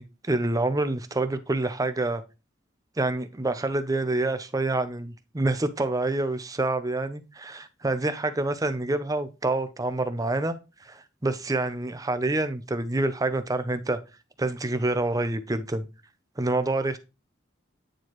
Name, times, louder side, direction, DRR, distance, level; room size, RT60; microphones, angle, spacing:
voice 1, 0.0-2.2 3.0-10.5 10.8-14.0 14.4-15.8 16.4-17.0, right 2 dB, 20° right, 0.6 m, -27 dB
9.0 x 4.5 x 3.1 m
head